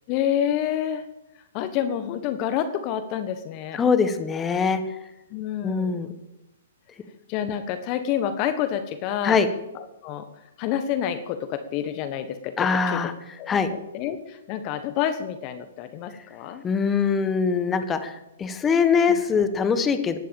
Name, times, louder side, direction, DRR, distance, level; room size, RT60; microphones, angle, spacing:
voice 1, 0.1-1.1 1.5-3.8 5.3-6.0 7.3-9.4 9.7-10.3 10.6-13.0 13.4-13.6 13.9-16.6 19.1-19.2, left 10 dB, 35° left, 10 dB, 1.4 m, -28 dB
voice 2, 3.7-4.8 5.6-6.1 9.2-9.5 12.6-13.1 13.5-13.7 16.6-20.2, left 5 dB, 15° left, 10 dB, 1.5 m, -22 dB
16.0 x 11.0 x 7.2 m, 0.92 s
hypercardioid pair, 135°, 0 cm